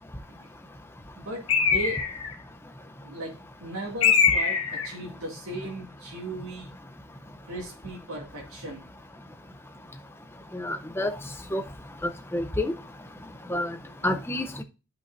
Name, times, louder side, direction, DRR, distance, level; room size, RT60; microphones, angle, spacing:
voice 1, 1.2-2.0 3.0-3.3 3.6-6.8 7.5-8.8 13.8-13.9, right 1 dB, 80° right, 2.3 m, -37 dB
Bird, 1.5-2.3 4.0-4.9, left 6 dB, 75° left, 1.8 m, -22 dB
voice 2, 10.5-11.1 11.5-11.6 12.0-12.7 13.5-13.8 14.0-14.6, left 1 dB, 10° left, 0.6 m, -28 dB
11.0 x 5.5 x 2.6 m
head